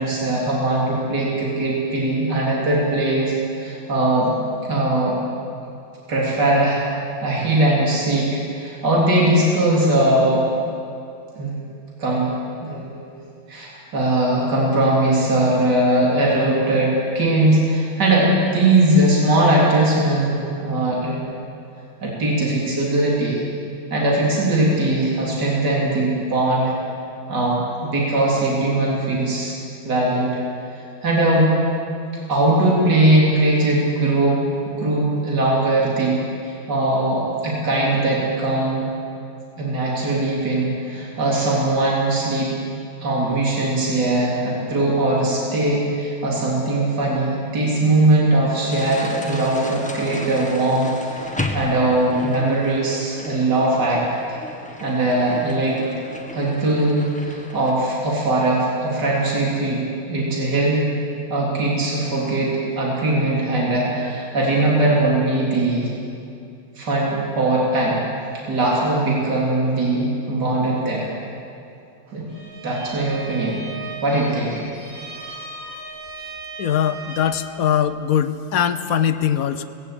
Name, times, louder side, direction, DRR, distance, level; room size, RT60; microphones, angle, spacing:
voice 1, 0.0-4.3 4.7-5.2 6.1-10.5 11.4-11.6 12.0-12.3 12.6-13.2 13.5-21.3 22.0-23.4 23.9-26.7 27.3-29.5 29.8-30.4 31.0-31.5 32.3-38.9 39.6-42.5 43.0-54.0 54.3-54.4 54.8-55.8 56.3-60.9 61.3-65.9 66.8-68.0 68.5-71.1 72.1-72.3 72.6-73.6 74.0-74.6, right 2 dB, 55° right, -4 dB, 4.0 m, -20 dB
sound 1, 48.7-57.8, left 1 dB, 5° left, 1.3 m, -34 dB
Bowed string instrument, 72.3-77.6, right 3 dB, 85° right, 4.6 m, -37 dB
voice 2, 76.6-79.6, left 9 dB, 60° left, 11 dB, 1.0 m, -21 dB
18.0 x 16.5 x 8.7 m, 2.5 s
omnidirectional pair, 2.2 m